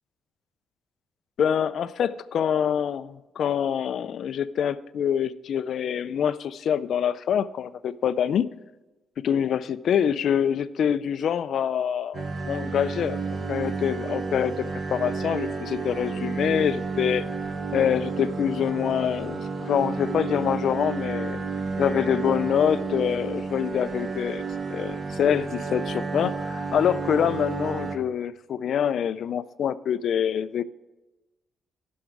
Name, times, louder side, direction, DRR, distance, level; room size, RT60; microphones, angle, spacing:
voice 1, 1.4-8.5 9.2-13.2 13.5-17.2 17.7-21.4 21.8-24.4 24.7-30.6, left 8 dB, 60° left, 15 dB, 0.4 m, -25 dB
sound 1, 12.1-28.0, right 4 dB, 35° right, 1.1 m, -31 dB
15.5 x 6.3 x 4.7 m, 1.1 s
cardioid pair, 140°, 0 cm